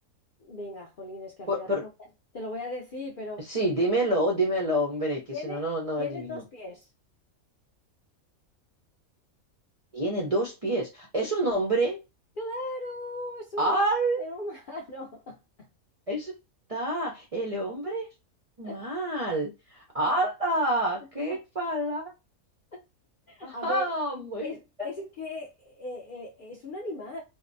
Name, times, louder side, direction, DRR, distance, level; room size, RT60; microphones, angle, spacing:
voice 1, 0.4-1.9 2.3-3.5 5.3-5.7 6.0-6.9 12.4-13.8 14.2-15.7 18.6-18.8 21.3-21.4 22.7-22.8 23.3-27.2, left 1 dB, 65° left, 0.5 m, -38 dB
voice 2, 1.5-1.8 3.4-6.4 9.9-12.0 13.6-14.2 16.1-16.3 16.7-18.1 18.6-22.1 23.4-24.5, right 1 dB, 55° right, 0.3 m, -28 dB
2.6 x 2.0 x 2.6 m
omnidirectional pair, 1.5 m